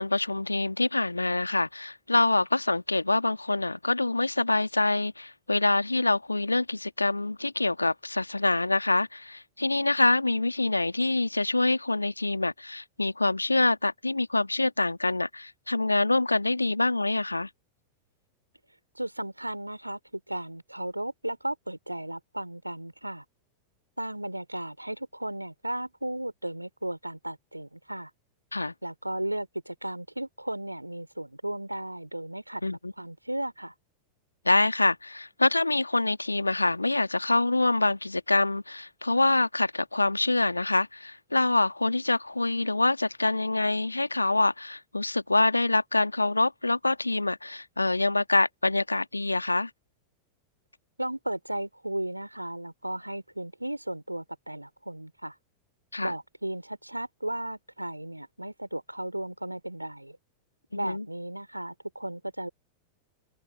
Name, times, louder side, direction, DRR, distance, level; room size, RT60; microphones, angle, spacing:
voice 1, 0.0-17.5 28.5-28.7 32.6-32.9 34.5-49.7 55.9-56.1 60.7-61.1, left 2 dB, 85° left, 1.8 m, -25 dB
voice 2, 19.0-23.2 24.0-28.1 28.8-32.6 33.0-33.7 51.0-55.4 56.0-60.2 60.7-62.5, right 1 dB, 85° right, 4.1 m, -35 dB
figure-of-eight pair, 90°, 0 cm